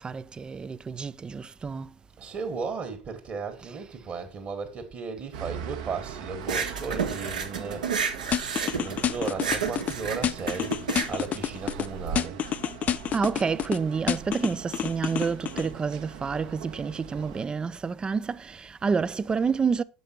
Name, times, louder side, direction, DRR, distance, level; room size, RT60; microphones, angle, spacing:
voice 1, 0.0-1.9 3.6-3.7 13.1-19.8, right 5 dB, 20° right, 0.4 m, -29 dB
voice 2, 2.2-7.9 8.7-10.8 11.1-12.4, right 5 dB, 35° right, 1.5 m, -35 dB
sound 1, 5.3-17.5, right 7 dB, 60° right, 1.0 m, -41 dB
sound 2, 6.4-12.2, right 6 dB, 75° right, 1.2 m, -31 dB
sound 3, 8.3-9.9 10.2-11.9 12.2-13.8 14.1-15.7, left 9 dB, 35° left, 0.5 m, -28 dB
7.4 x 5.4 x 4.2 m
figure-of-eight pair, 70°, 4 cm